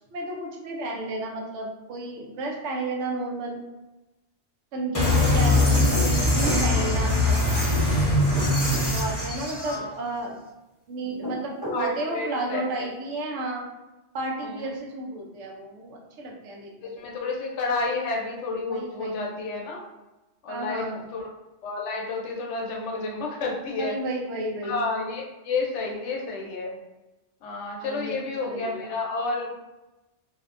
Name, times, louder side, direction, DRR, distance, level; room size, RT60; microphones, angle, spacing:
voice 1, 0.1-3.6 4.7-7.6 8.9-10.4 10.9-13.7 14.1-17.0 18.7-19.3 20.5-21.0 23.8-24.8 27.8-29.0, right 2 dB, 85° right, -1 dB, 0.9 m, -32 dB
sound 1, 4.9-9.8, left 1 dB, 20° left, 0.6 m, -22 dB
voice 2, 5.4-6.0 9.6-9.9 11.7-12.9 14.4-14.7 16.8-19.8 20.4-20.8 21.1-21.3 21.6-24.0 24.6-26.7 27.4-29.5, left 3 dB, 80° left, -1 dB, 0.9 m, -31 dB
sound 2, 5.7-6.7 8.1-8.9 11.0-11.9, left 1 dB, 20° right, 0.8 m, -33 dB
2.6 x 2.1 x 2.4 m, 1.0 s
omnidirectional pair, 1.2 m